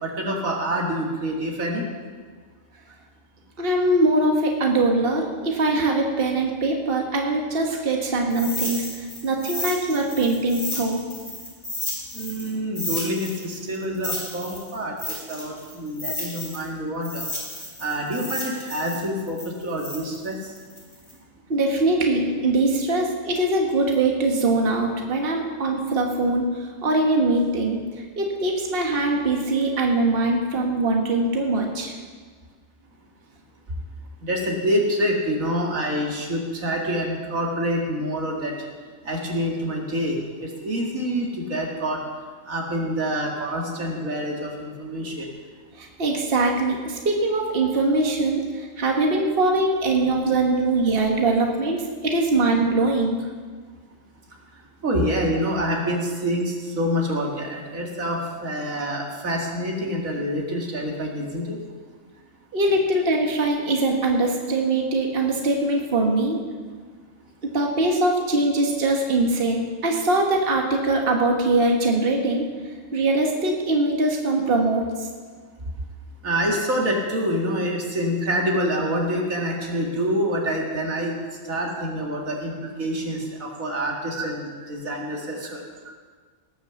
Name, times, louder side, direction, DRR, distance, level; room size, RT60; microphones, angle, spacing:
voice 1, 0.0-1.8 12.1-17.3 17.8-20.5 34.2-38.5 39.0-42.0 42.5-45.3 54.8-61.6 76.2-81.1 81.4-85.6, equal, 85° right, -1 dB, 2.4 m, -26 dB
voice 2, 3.6-11.0 21.5-31.9 45.8-53.2 62.5-66.4 67.4-72.5 72.9-75.1 84.2-84.3, right 2 dB, 45° right, 1 dB, 1.6 m, -22 dB
sound 1, 8.3-12.5 12.8-16.7 17.0-21.1, left 1 dB, 20° left, 3.6 m, -33 dB
18.0 x 6.7 x 6.9 m, 1.5 s
omnidirectional pair, 1.4 m